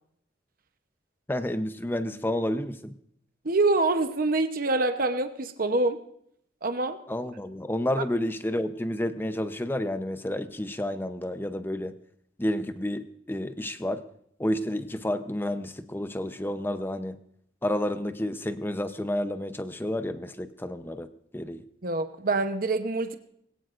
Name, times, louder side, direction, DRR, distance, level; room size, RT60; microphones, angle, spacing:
voice 1, 1.3-2.9 7.1-11.9 12.4-14.0 14.4-17.2 17.6-21.1 21.3-21.6, left 1 dB, 10° left, 10 dB, 0.7 m, -30 dB
voice 2, 3.4-6.0 6.6-7.0 21.8-23.2, right 2 dB, 50° right, 8 dB, 0.9 m, -25 dB
20.5 x 17.5 x 2.6 m, 0.71 s
head